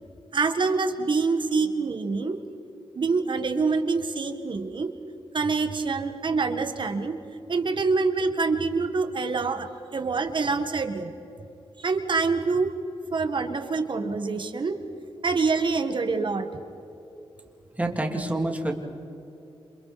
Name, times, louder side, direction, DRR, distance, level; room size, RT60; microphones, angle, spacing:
voice 1, 0.3-2.4 3.0-4.9 5.3-7.2 7.5-11.1 11.8-12.7 13.1-14.8 15.2-16.5, right 4 dB, 55° right, 6 dB, 1.7 m, -26 dB
voice 2, 17.7-18.7, right 1 dB, 15° right, 2 dB, 3.0 m, -27 dB
28.5 x 27.0 x 4.3 m, 2.9 s
wide cardioid pair, 90°, 10 cm